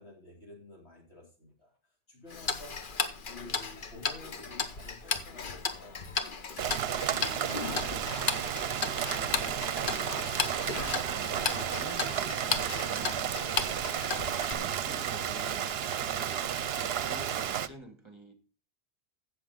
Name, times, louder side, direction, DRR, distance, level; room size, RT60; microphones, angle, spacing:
voice 1, 0.0-3.0 3.3-8.1 15.0-15.2, left 2 dB, 70° left, 4.0 m, -52 dB
Tick-tock, 2.3-14.5, left 5 dB, 50° left, 1.1 m, -35 dB
Rain, 6.6-17.7, right 9 dB, 65° right, 0.9 m, -32 dB
voice 2, 8.7-13.5 14.4-18.3, right 1 dB, 25° right, 1.4 m, -49 dB
16.0 x 6.8 x 3.9 m
omnidirectional pair, 1.1 m